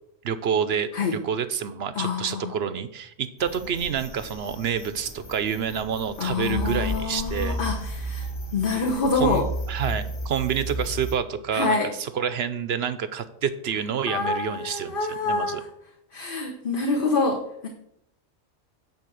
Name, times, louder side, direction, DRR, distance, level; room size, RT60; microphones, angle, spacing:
voice 1, 0.2-7.6 9.2-15.0 15.2-15.6, right 7 dB, 60° right, 11 dB, 0.8 m, -28 dB
voice 2, 1.9-2.5 6.2-9.5 11.5-11.9 14.1-15.7 16.1-17.7, left 3 dB, 45° left, 1 dB, 1.2 m, -26 dB
sound 1, 3.4-11.2, right 1 dB, 25° left, 0.8 m, -33 dB
9.7 x 4.6 x 7.7 m, 0.77 s
omnidirectional pair, 1.3 m